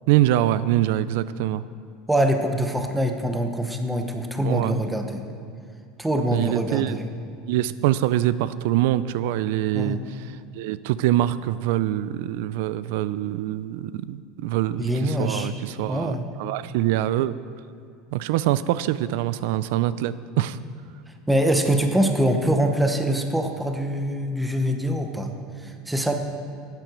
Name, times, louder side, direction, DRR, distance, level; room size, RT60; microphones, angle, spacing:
voice 1, 0.1-1.6 4.4-4.8 6.3-7.0 7.5-17.3 18.1-20.6, right 13 dB, 70° right, 16 dB, 0.4 m, -24 dB
voice 2, 2.1-5.2 6.0-6.8 9.7-10.0 14.8-15.5 15.9-16.2 21.3-25.3 25.6-26.1, equal, 5° right, 4 dB, 0.8 m, -24 dB
11.5 x 9.2 x 6.2 m, 2.3 s
supercardioid pair, 160°, 0 cm